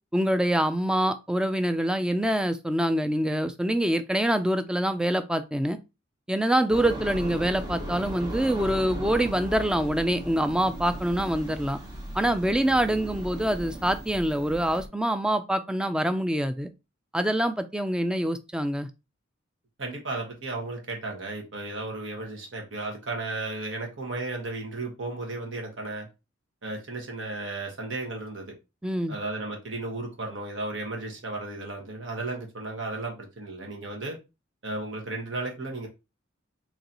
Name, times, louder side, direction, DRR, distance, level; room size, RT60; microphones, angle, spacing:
voice 1, 0.1-5.8 6.3-11.8 12.1-16.7 17.1-18.9 28.8-29.2, right 1 dB, 5° right, 0.3 m, -25 dB
sound 1, 6.7-14.9, right 1 dB, 20° right, 1.0 m, -37 dB
voice 2, 19.8-26.1 26.6-28.5 29.1-34.2 34.6-35.9, right 2 dB, 75° right, 1.3 m, -34 dB
3.9 x 3.0 x 2.9 m
head